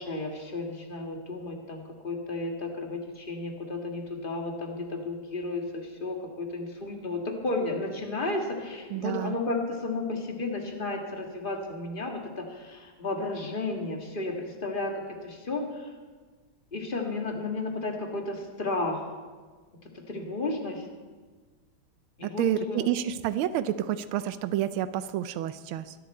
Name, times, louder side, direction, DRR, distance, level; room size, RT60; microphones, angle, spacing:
voice 1, 0.0-14.9 15.2-15.9 16.7-19.1 19.8-20.9 22.2-22.9, left 2 dB, 25° left, 2 dB, 1.8 m, -33 dB
voice 2, 8.9-9.3 22.2-25.9, right 12 dB, 85° right, 12 dB, 1.4 m, -29 dB
22.0 x 11.0 x 4.3 m, 1.4 s
omnidirectional pair, 2.3 m